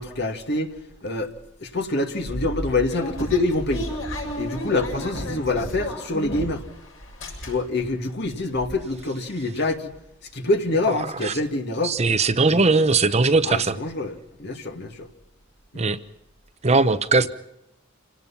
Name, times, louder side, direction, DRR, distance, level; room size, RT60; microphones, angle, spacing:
voice 1, 0.0-1.3 1.6-3.9 4.4-6.6 7.4-9.9 10.3-12.0 12.5-12.7 13.4-15.1 15.7-15.9 17.2-17.3, left 2 dB, 55° left, 5 dB, 2.3 m, -26 dB
sound 1, 2.3-6.7 7.0-7.9 8.3-8.4 8.5-8.8, equal, 75° left, 7.5 m, -32 dB
voice 2, 10.9-11.3 11.8-13.8 15.7-16.0 16.6-17.3, right 3 dB, 35° right, 11 dB, 0.8 m, -20 dB
28.0 x 18.0 x 5.8 m, 0.84 s
head